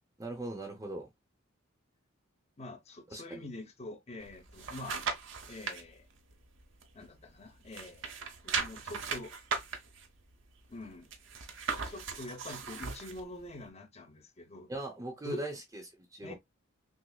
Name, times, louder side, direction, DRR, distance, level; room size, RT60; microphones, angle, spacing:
voice 1, 0.2-1.1 3.1-3.4 14.7-15.8 16.1-16.3, right 1 dB, 15° right, 0.7 m, -39 dB
voice 2, 2.6-5.0 5.5-6.1 6.9-8.1 8.4-9.3 10.7-11.1 11.9-14.7 15.2-15.4 16.2-16.3, left 1 dB, 30° left, 0.9 m, -45 dB
sound 1, 4.2-5.8 6.3-7.4 7.7-13.2 13.7-13.8, right 5 dB, 70° right, 0.8 m, -38 dB
6.1 x 2.0 x 2.2 m
head